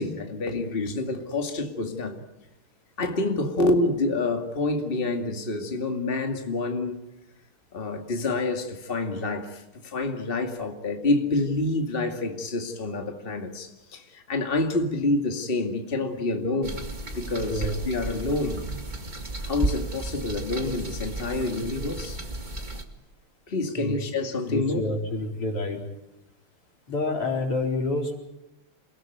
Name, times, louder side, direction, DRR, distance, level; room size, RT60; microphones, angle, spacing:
voice 1, 0.0-2.2 3.0-7.0 7.7-16.8 17.1-18.7 19.5-22.2 23.5-24.8, left 2 dB, 25° left, 2.3 m, -27 dB
sound 1, 16.6-22.8, right 2 dB, 20° right, 2.0 m, -33 dB
voice 2, 24.5-25.8 26.9-28.2, left 2 dB, 85° left, 5.0 m, -28 dB
28.5 x 18.5 x 9.3 m
omnidirectional pair, 2.4 m